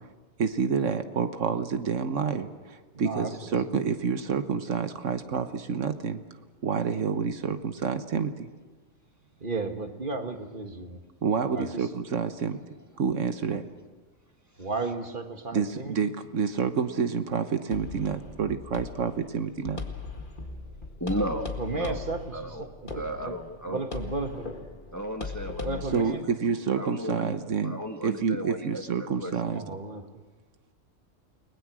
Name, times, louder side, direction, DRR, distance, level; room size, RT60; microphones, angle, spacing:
voice 1, 0.4-6.2 6.6-8.5 11.2-12.6 13.0-13.6 15.5-19.8 25.9-29.6, right 6 dB, 85° right, 9 dB, 1.5 m, -28 dB
voice 2, 2.9-3.6 9.4-11.0 11.5-11.9 14.6-16.1 21.6-23.4 23.7-24.6 25.6-26.2 29.3-30.1, right 3 dB, 45° right, 5 dB, 1.8 m, -34 dB
sound 1, 17.7-26.0, left 5 dB, 45° left, 2.0 m, -39 dB
voice 3, 21.0-22.0 22.3-23.9 24.9-27.4 27.6-29.3, right 1 dB, 15° left, 4 dB, 1.5 m, -35 dB
29.5 x 20.0 x 6.3 m, 1.3 s
omnidirectional pair, 1.3 m